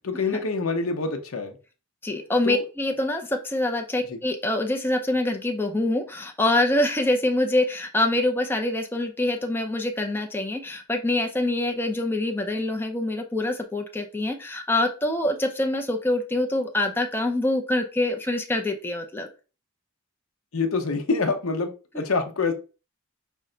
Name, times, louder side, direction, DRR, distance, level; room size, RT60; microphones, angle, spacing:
voice 1, 0.0-1.6 2.4-2.6 4.1-4.2 20.5-21.7 21.9-22.5, left 4 dB, 80° left, 5 dB, 0.8 m, -26 dB
voice 2, 2.0-19.3, left 1 dB, 10° left, 3 dB, 0.5 m, -25 dB
5.3 x 2.2 x 3.8 m, 0.33 s
head